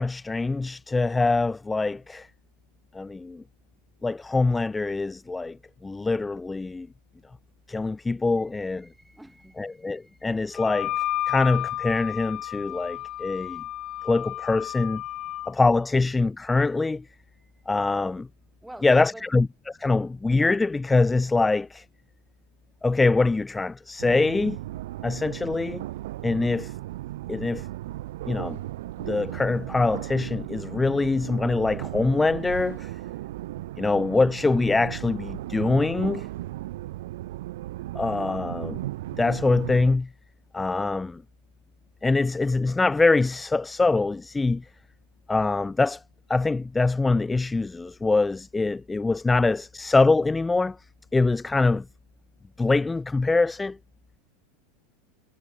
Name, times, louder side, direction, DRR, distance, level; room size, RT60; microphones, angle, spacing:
voice 1, 0.0-2.3 2.9-3.4 4.0-5.6 5.8-6.9 7.7-8.9 9.6-10.9 11.3-13.6 14.0-15.0 15.5-17.1 17.7-18.3 18.8-21.8 22.8-24.6 25.0-25.8 26.2-26.7 27.3-27.7 28.3-28.6 29.0-32.9 33.8-36.3 37.9-38.8 39.2-40.1 40.5-41.2 42.0-44.6 45.3-46.0 46.3-50.8 51.1-51.9 52.6-53.8, left 3 dB, 15° left, 0.4 m, -24 dB
voice 2, 8.4-10.9 11.3-11.4 12.7-13.6 14.0-14.1 15.0-15.6 17.3-17.6 18.6-19.3, right 1 dB, 5° right, 7.2 m, -50 dB
Wind instrument woodwind instrument, 10.5-15.5, left 14 dB, 45° left, 1.0 m, -32 dB
sound 1, 24.0-40.0, right 16 dB, 75° right, 2.1 m, -36 dB
hypercardioid pair, 95°, 0 cm